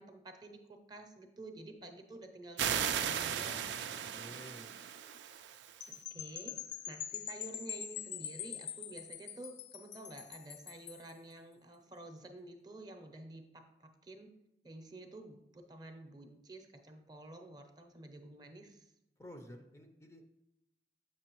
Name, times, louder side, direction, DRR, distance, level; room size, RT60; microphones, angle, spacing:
voice 1, 0.0-3.7 5.9-6.6 6.9-14.3 14.6-18.9, right 2 dB, 25° right, 5 dB, 0.6 m, -50 dB
sound 1, 2.6-5.9, right 8 dB, 85° right, 0.4 m, -36 dB
voice 2, 4.1-4.7 19.2-20.3, equal, 15° left, 4 dB, 0.5 m, -51 dB
sound 2, 5.8-11.1, left 10 dB, 85° left, 0.5 m, -44 dB
7.2 x 6.2 x 3.0 m, 0.87 s
head